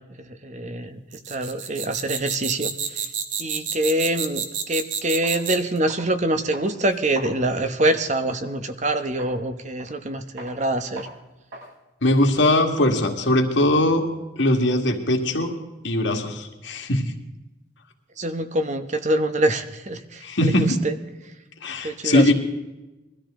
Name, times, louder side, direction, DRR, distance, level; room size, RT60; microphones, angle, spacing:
voice 1, 0.2-1.0 1.3-3.1 3.4-11.1 18.2-21.0 21.8-22.3, right 1 dB, 40° right, 9 dB, 1.0 m, -25 dB
sound 1, 1.1-5.8, right 7 dB, 75° right, 1.5 m, -29 dB
sound 2, 4.7-4.8 5.2-5.4 5.9-6.2 6.5-8.0 8.4-8.6 9.2-9.4 9.8-10.1 10.4-10.6 11.0-11.2 11.5-11.7 12.0-13.9, right 1 dB, 60° right, 7.2 m, -42 dB
voice 2, 12.0-14.1 14.4-15.5 15.8-17.1 20.2-20.8 21.6-22.3, left 1 dB, 75° left, 2 dB, 2.0 m, -20 dB
21.5 x 13.5 x 3.8 m, 1.0 s
head